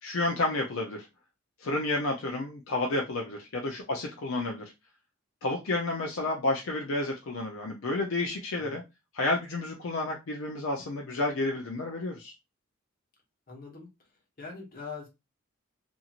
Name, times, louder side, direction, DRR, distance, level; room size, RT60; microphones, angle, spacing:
voice 1, 0.0-1.1 1.6-4.6 5.4-8.8 9.1-12.3, left 2 dB, 70° left, 1 dB, 0.5 m, -30 dB
voice 2, 13.5-13.9 14.4-15.1, left 4 dB, 45° left, 0 dB, 1.1 m, -42 dB
2.9 x 2.6 x 2.4 m, 0.24 s
head